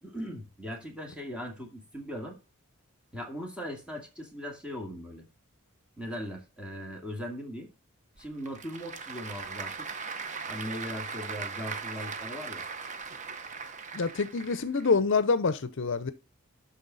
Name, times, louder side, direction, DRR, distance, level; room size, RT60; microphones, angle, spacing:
voice 1, 0.0-2.4 3.1-5.3 6.0-7.7 8.2-9.9 10.5-12.6, equal, 5° right, 2.1 m, -39 dB
Applause / Crowd, 8.2-14.9, right 5 dB, 35° right, 0.8 m, -39 dB
voice 2, 13.9-16.1, left 4 dB, 60° left, 0.6 m, -26 dB
12.0 x 4.0 x 4.0 m
head